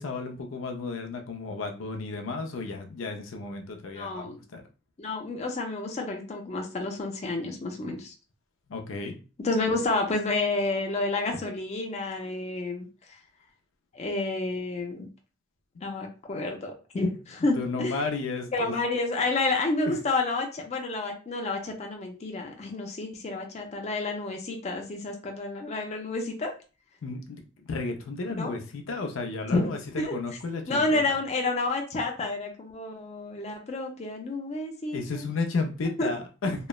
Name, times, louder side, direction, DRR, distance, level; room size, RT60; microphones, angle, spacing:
voice 1, 0.0-4.6 8.7-9.2 17.4-18.8 19.9-20.0 27.0-31.0 34.9-36.7, left 3 dB, 90° left, 4 dB, 0.5 m, -33 dB
voice 2, 3.9-4.4 5.0-8.1 9.4-12.9 13.9-15.1 15.8-18.0 18.5-26.5 28.4-28.5 29.5-30.1 30.7-35.2 36.0-36.1, left 2 dB, 35° left, 2 dB, 0.4 m, -30 dB
3.0 x 2.0 x 2.2 m, 0.34 s
head